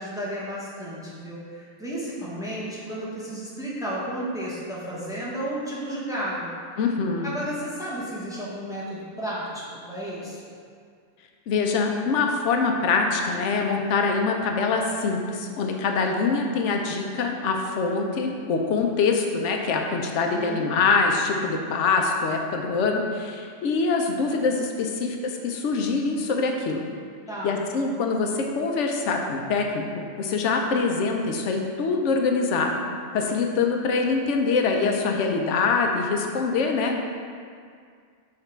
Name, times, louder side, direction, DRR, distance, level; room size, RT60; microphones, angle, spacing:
voice 1, 0.0-6.8 7.2-10.4 20.3-20.7 27.3-27.6, right 1 dB, 5° right, -7 dB, 0.9 m, -33 dB
voice 2, 6.8-7.3 11.5-26.8 27.4-32.8 33.1-37.0, left 4 dB, 70° left, 2 dB, 0.9 m, -24 dB
5.9 x 3.8 x 4.5 m, 2.2 s
omnidirectional pair, 1.4 m